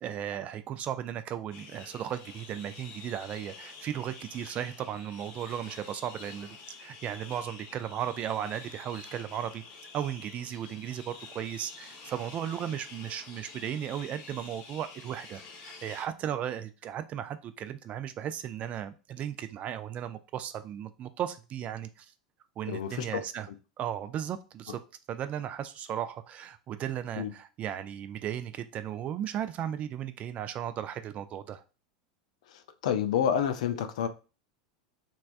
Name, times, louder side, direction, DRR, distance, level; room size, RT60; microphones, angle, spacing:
voice 1, 0.0-9.6 9.9-22.1 22.6-23.5 23.8-24.8 25.1-31.6, right 10 dB, 35° right, 0.3 m, -36 dB
sound 1, 1.5-16.1, left 5 dB, 45° left, 0.8 m, -48 dB
voice 2, 22.7-23.2 27.2-27.3 32.8-34.1, left 8 dB, 65° left, 0.4 m, -28 dB
3.1 x 2.3 x 2.5 m
hypercardioid pair, 90°, 4 cm